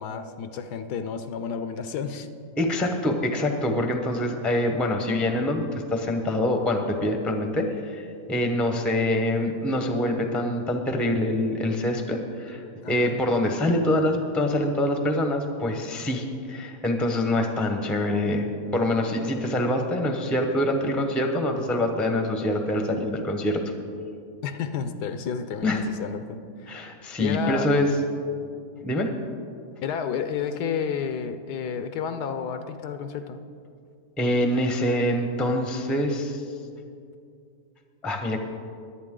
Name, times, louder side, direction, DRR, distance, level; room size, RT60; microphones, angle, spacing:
voice 1, 0.0-2.3 12.8-13.2 24.4-26.8 27.2-27.7 29.8-33.4, left 6 dB, 75° left, 9 dB, 1.2 m, -31 dB
voice 2, 2.6-23.6 25.6-25.9 26.7-27.9 28.8-29.1 34.2-36.4 38.0-38.4, left 1 dB, ahead, 4 dB, 0.7 m, -25 dB
22.0 x 8.7 x 3.8 m, 2.4 s
omnidirectional pair, 1.8 m